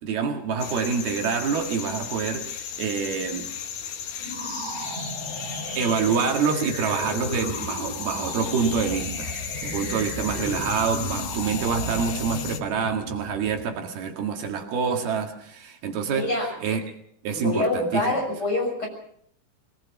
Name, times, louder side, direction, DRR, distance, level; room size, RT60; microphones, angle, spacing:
voice 1, 0.0-3.5 5.8-9.3 9.6-16.3 16.6-16.8 17.2-18.2, right 6 dB, 75° right, 3 dB, 3.9 m, -26 dB
sound 1, 0.6-12.6, left 8 dB, 65° left, 1.9 m, -35 dB
sound 2, 4.2-13.7, equal, 10° right, 6.2 m, -35 dB
voice 2, 16.1-16.5 17.3-18.9, left 2 dB, 25° left, 1 dB, 6.6 m, -25 dB
22.5 x 19.5 x 6.0 m, 0.66 s
omnidirectional pair, 4.5 m